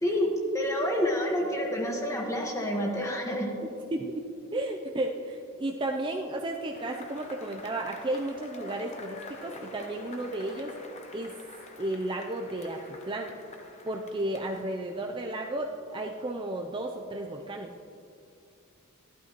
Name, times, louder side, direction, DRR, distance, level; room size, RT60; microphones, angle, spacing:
voice 1, 0.0-3.5, equal, 15° left, 0 dB, 1.3 m, -28 dB
voice 2, 3.6-4.2 4.5-10.7 11.1-11.3 11.8-12.8 13.1-13.3 13.8-17.7, right 1 dB, 20° right, 2 dB, 0.4 m, -33 dB
Cheering / Applause / Crowd, 6.7-15.4, left 2 dB, 30° left, 0.8 m, -46 dB
14.5 x 12.0 x 3.0 m, 2.6 s
head